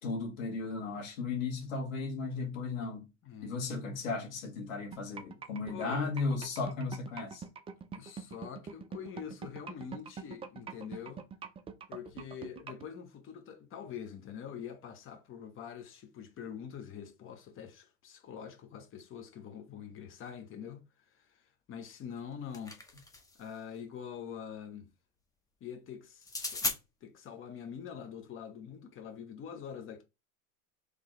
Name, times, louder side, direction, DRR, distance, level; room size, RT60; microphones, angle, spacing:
voice 1, 0.0-3.1 3.4-7.4, left 4 dB, 75° left, 1.9 m, -35 dB
voice 2, 3.2-3.6 5.7-6.0 7.9-11.2 11.9-20.8 21.1-22.8 23.4-24.9 25.6-30.0, left 8 dB, 30° left, 1.1 m, -45 dB
sound 1, 4.9-12.9, right 6 dB, 15° right, 0.4 m, -43 dB
sound 2, 22.2-23.5 26.2-26.8, left 2 dB, 10° left, 0.8 m, -37 dB
3.9 x 3.4 x 3.2 m
hypercardioid pair, 105°, 40 cm